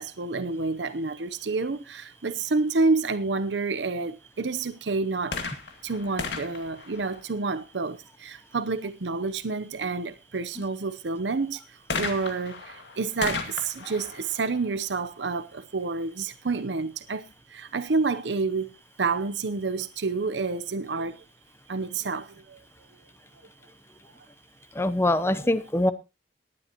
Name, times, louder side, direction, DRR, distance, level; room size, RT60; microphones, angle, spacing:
voice 1, 0.0-5.4 5.8-11.6 12.0-17.2 17.5-18.7 19.0-21.2 21.7-22.6 25.4-25.5, right 3 dB, 85° right, 0.8 m, -29 dB
sound 1, 5.2-7.8 11.9-15.5 16.3-16.4, left 4 dB, 85° left, 2.1 m, -36 dB
voice 2, 24.7-25.9, left 1 dB, 15° left, 0.7 m, -23 dB
18.5 x 11.0 x 3.0 m
head